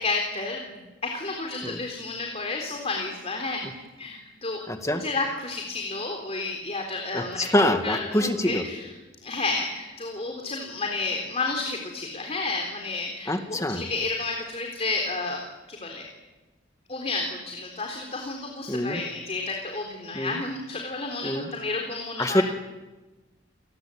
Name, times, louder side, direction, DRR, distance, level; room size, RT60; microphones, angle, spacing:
voice 1, 0.0-3.6 4.0-8.9 9.2-15.4 15.7-16.1 16.9-22.4, left 3 dB, 30° left, 2 dB, 3.8 m, -31 dB
voice 2, 4.7-5.1 7.1-8.6 13.3-13.9 18.7-19.0 20.1-20.4 21.2-21.5 22.2-22.4, left 1 dB, 15° left, 7 dB, 2.0 m, -25 dB
29.0 x 21.5 x 8.7 m, 1.2 s
head